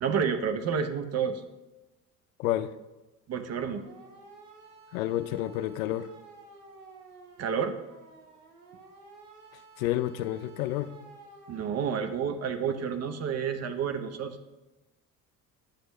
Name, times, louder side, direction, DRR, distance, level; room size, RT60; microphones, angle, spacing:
voice 1, 0.0-1.4 3.3-3.8 7.4-7.8 11.5-14.4, right 7 dB, 30° right, 9 dB, 0.8 m, -30 dB
voice 2, 2.4-2.7 4.9-6.1 9.8-10.9, left 13 dB, 60° left, 13 dB, 0.5 m, -29 dB
sound 1, 3.6-11.7, right 3 dB, 70° right, 1.4 m, -52 dB
10.0 x 7.9 x 3.2 m, 1.1 s
figure-of-eight pair, 60°, 48 cm